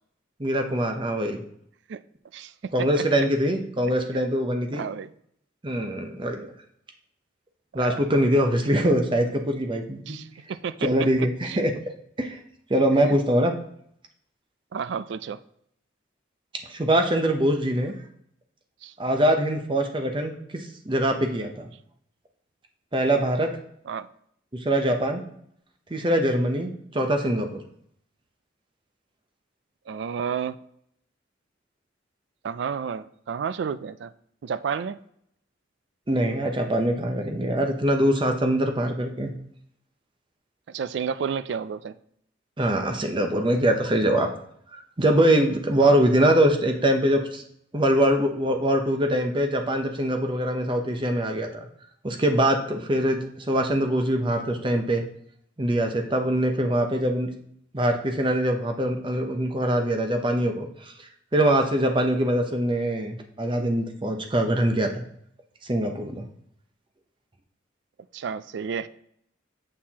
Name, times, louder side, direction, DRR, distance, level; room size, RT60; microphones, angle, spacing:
voice 1, 0.4-1.4 2.7-4.8 5.6-6.5 7.7-10.2 10.8-11.7 12.2-12.4 12.7-13.5 16.7-17.9 19.0-21.7 22.9-23.5 24.6-25.2 25.9-27.6 36.1-39.3 42.6-44.3 44.7-47.4 47.7-51.7 52.0-55.0 55.6-57.3 57.7-60.9 61.3-65.0 65.6-66.2, right 1 dB, 25° right, 0.7 m, -23 dB
voice 2, 2.3-2.9 4.7-5.1 7.7-8.0 10.1-10.9 11.4-11.7 13.1-13.2 14.7-15.4 18.8-18.9 23.9-24.1 29.9-30.6 32.4-34.1 34.4-35.0 40.7-42.0 45.8-46.0 68.1-68.9, right 6 dB, 65° right, 0.3 m, -31 dB
7.5 x 6.4 x 2.9 m
head